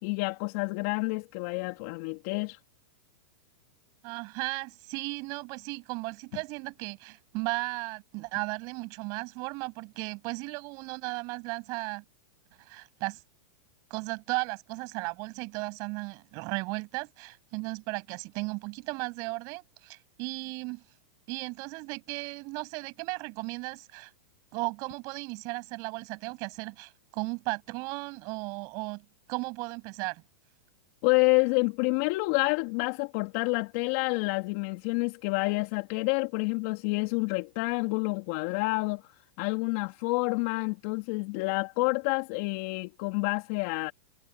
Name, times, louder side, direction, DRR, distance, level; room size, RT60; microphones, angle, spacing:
voice 1, 0.0-2.6 31.0-39.1 39.4-43.9, left 29 dB, 50° left, 3.4 m, -28 dB
voice 2, 4.0-12.0 12.6-13.2 13.9-20.8 21.3-24.1 24.5-30.2, right 28 dB, 45° right, 7.9 m, -35 dB
hypercardioid pair, 135°, 8 cm